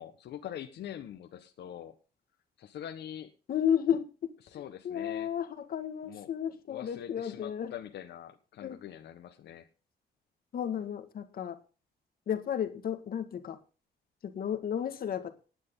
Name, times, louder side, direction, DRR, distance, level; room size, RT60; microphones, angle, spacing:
voice 1, 0.0-2.0 2.6-3.3 4.4-5.3 6.0-6.3 6.7-9.7, left 10 dB, 75° left, 5 dB, 1.4 m, -44 dB
voice 2, 3.5-4.3 4.8-7.7 8.6-8.8 10.5-11.6 12.3-13.6 14.2-15.3, left 9 dB, 60° left, 8 dB, 2.0 m, -32 dB
18.5 x 9.8 x 3.9 m, 0.35 s
cardioid pair, 160°, 18 cm